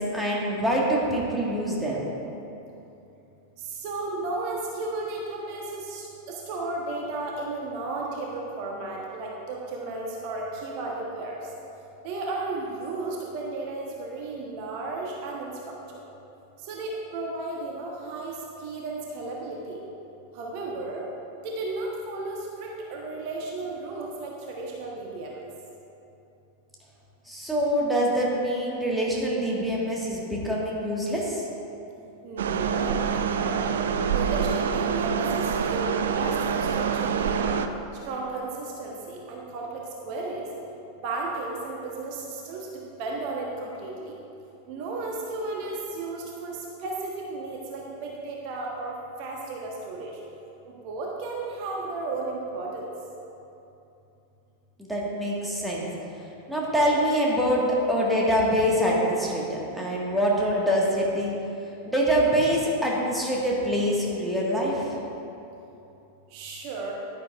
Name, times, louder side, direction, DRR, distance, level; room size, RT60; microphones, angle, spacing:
voice 1, 0.0-2.0 27.3-31.5 54.8-55.9 56.5-61.3 61.9-64.9, equal, 5° right, -5 dB, 1.7 m, -25 dB
voice 2, 3.8-11.4 12.0-15.5 16.7-19.8 20.3-21.0 21.4-25.4 32.2-33.7 34.1-37.6 38.1-40.4 41.0-42.7 43.0-44.1 44.7-50.1 50.8-52.9 66.3-66.9, right 3 dB, 45° right, -2 dB, 1.1 m, -34 dB
sound 1, 32.4-37.7, right 6 dB, 60° right, 0.4 m, -26 dB
11.0 x 10.0 x 2.5 m, 2.9 s
figure-of-eight pair, 90°, 0 cm